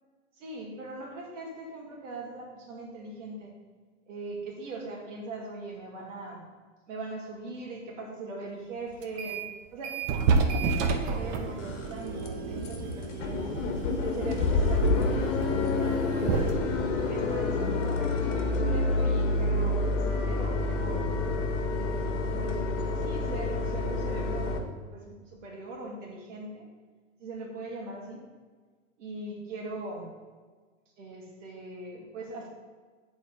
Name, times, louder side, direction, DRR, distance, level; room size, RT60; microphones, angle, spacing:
voice 1, 0.4-3.5 4.1-6.4 6.9-13.6 14.0-16.6 17.1-21.1 21.7-22.0 22.3-26.6 27.2-28.2 29.0-30.1 31.0-32.5, right 2 dB, 75° right, -1 dB, 2.1 m, -40 dB
sound 1, 9.0-9.5 9.8-18.3, right 4 dB, 35° right, 0.7 m, -31 dB
sound 2, 10.9-11.0 11.5-11.9 12.2-12.3 12.6-12.8 13.0-24.6, left 3 dB, 70° left, 1.1 m, -28 dB
8.2 x 4.2 x 3.9 m, 1.5 s
hypercardioid pair, 125°, 37 cm